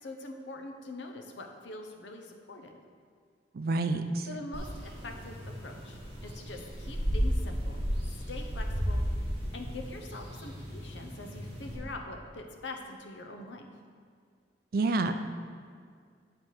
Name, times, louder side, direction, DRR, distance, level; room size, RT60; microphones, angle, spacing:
voice 1, 0.0-2.8 4.2-7.8 8.3-9.0 9.5-13.7, left 2 dB, 85° left, 3 dB, 0.8 m, -43 dB
voice 2, 3.5-4.3 14.7-15.1, right 3 dB, 55° right, 8 dB, 0.4 m, -28 dB
sound 1, 4.5-11.8, equal, 30° right, 1.7 m, -34 dB
8.5 x 4.4 x 4.5 m, 2.1 s
head